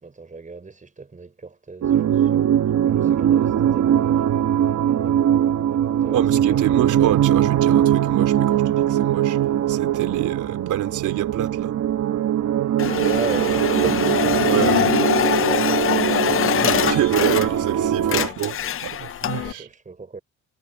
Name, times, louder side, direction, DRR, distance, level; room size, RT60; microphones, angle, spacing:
voice 1, 0.0-2.5 2.8-4.2 5.0-5.2 5.6-6.8 12.6-14.4 15.4-16.9 18.0-18.8 19.3-20.2, right 4 dB, 25° right, 5.1 m, -36 dB
sound 1, 1.8-18.3, right 10 dB, 65° right, 1.5 m, -21 dB
voice 2, 6.1-9.4 9.7-11.7 14.5-15.0 16.6-19.7, right 12 dB, 80° right, 3.1 m, -27 dB
sound 2, 12.8-17.7 18.0-19.5, left 10 dB, 45° left, 0.6 m, -23 dB
cardioid pair, 90°, 30 cm